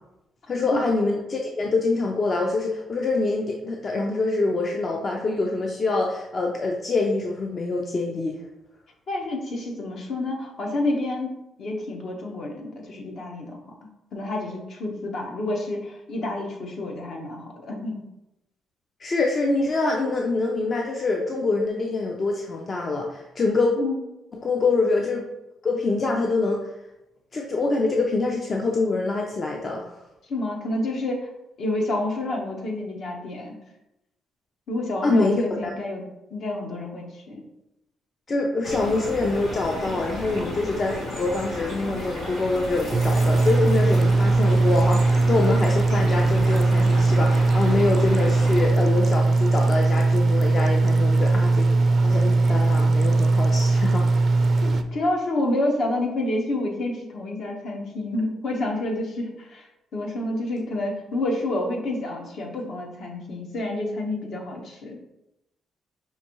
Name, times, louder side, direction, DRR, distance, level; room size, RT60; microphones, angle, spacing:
voice 1, 0.5-8.4 19.0-23.7 24.3-25.2 25.6-26.7 27.3-29.9 35.0-35.7 38.3-54.1, left 3 dB, 40° left, 1 dB, 0.5 m, -25 dB
voice 2, 9.1-18.0 23.8-24.0 30.3-31.3 31.6-33.5 34.7-36.0 36.3-37.4 54.6-59.7 59.9-65.0, left 1 dB, 65° left, 1 dB, 0.9 m, -29 dB
sound 1, 38.6-48.7, left 1 dB, 90° left, 1.5 m, -33 dB
sound 2, 42.9-54.8, right 3 dB, 45° right, 0.3 m, -20 dB
5.6 x 2.6 x 2.9 m, 0.90 s
cardioid pair, 90°, 0 cm